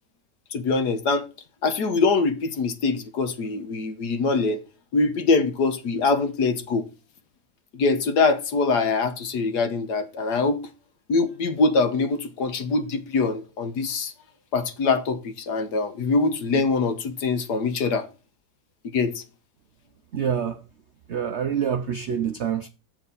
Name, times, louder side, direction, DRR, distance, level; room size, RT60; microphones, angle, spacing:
voice 1, 0.5-1.3 1.6-4.6 4.9-6.8 7.7-10.7 11.1-14.1 14.5-18.1 18.8-19.2, left 4 dB, 65° left, 1.6 m, -23 dB
voice 2, 20.1-20.6 21.1-22.7, right 8 dB, 70° right, 0.6 m, -26 dB
8.0 x 7.6 x 4.0 m
omnidirectional pair, 2.0 m